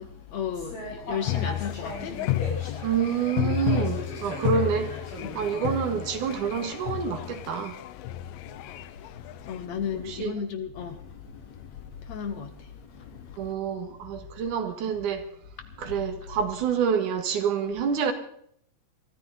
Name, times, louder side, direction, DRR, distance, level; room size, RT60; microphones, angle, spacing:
voice 1, 0.0-3.0 5.2-5.4 8.3-13.5 15.6-15.9, left 7 dB, 65° left, 2.1 m, -36 dB
sound 1, 0.5-6.1, equal, 40° left, 7.6 m, -39 dB
sound 2, 1.3-9.6, left 14 dB, 85° left, 2.4 m, -32 dB
voice 2, 2.8-4.9 5.3-7.7 10.1-10.3 13.4-15.2 15.8-18.1, right 7 dB, 70° right, 3.0 m, -27 dB
23.0 x 13.5 x 3.9 m
omnidirectional pair, 3.9 m